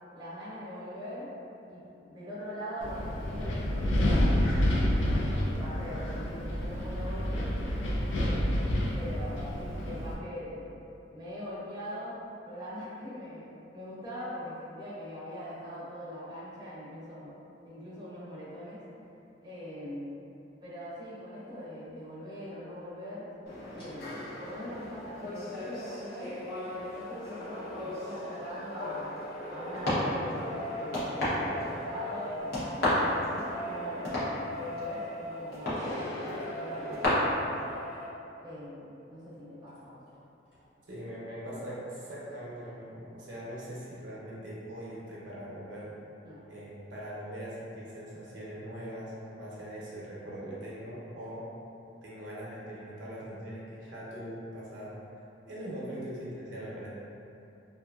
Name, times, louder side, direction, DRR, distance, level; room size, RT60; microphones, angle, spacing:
voice 1, 0.1-1.3 1.7-4.5 5.0-7.5 8.1-10.7 11.1-12.2 12.4-17.4 17.6-18.8 19.4-20.1 20.6-23.3 23.7-26.4 26.7-29.1 29.5-32.8 33.1-37.7 38.4-40.0 46.2-46.4, equal, 20° right, -10 dB, 0.6 m, -42 dB
Wind, 2.8-10.1, left 1 dB, 85° left, 0.4 m, -29 dB
sound 1, 23.5-37.1, left 1 dB, 60° left, 0.8 m, -35 dB
sound 2, 23.8-23.9 25.5-29.0 29.3-38.1 39.7-39.8 40.1-40.2 40.5-40.6, left 1 dB, 30° left, 0.9 m, -42 dB
voice 2, 40.9-45.9 46.5-51.5 52.0-54.9 55.5-56.9, equal, 65° right, -7 dB, 0.6 m, -41 dB
2.6 x 2.5 x 2.3 m, 2.8 s
head